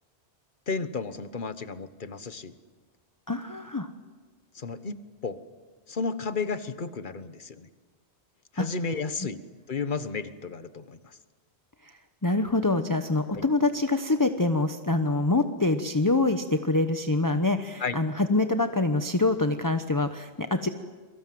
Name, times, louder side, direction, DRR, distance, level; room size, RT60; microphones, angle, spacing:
voice 1, 0.7-2.5 4.5-5.4 5.9-7.7 8.5-9.4 9.7-11.2 13.3-13.4 17.8-18.0, left 4 dB, 50° left, 12 dB, 1.3 m, -33 dB
voice 2, 3.3-3.9 8.6-8.7 12.2-20.7, left 2 dB, 20° left, 7 dB, 0.9 m, -25 dB
28.5 x 23.5 x 7.7 m, 1.4 s
omnidirectional pair, 1.1 m